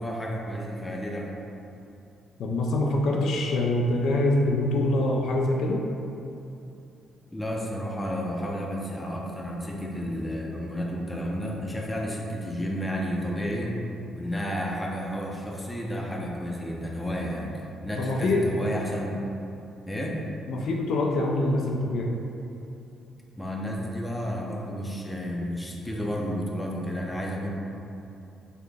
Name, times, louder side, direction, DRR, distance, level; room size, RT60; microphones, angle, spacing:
voice 1, 0.0-1.3 7.3-13.7 14.1-17.5 17.8-19.2 19.9-20.2 23.4-27.5, equal, 10° left, -2 dB, 0.5 m, -31 dB
voice 2, 2.4-5.9 18.0-18.5 20.5-22.1, left 2 dB, 75° left, 0 dB, 0.3 m, -24 dB
4.0 x 2.1 x 3.3 m, 2.7 s
cardioid pair, 90°, 0 cm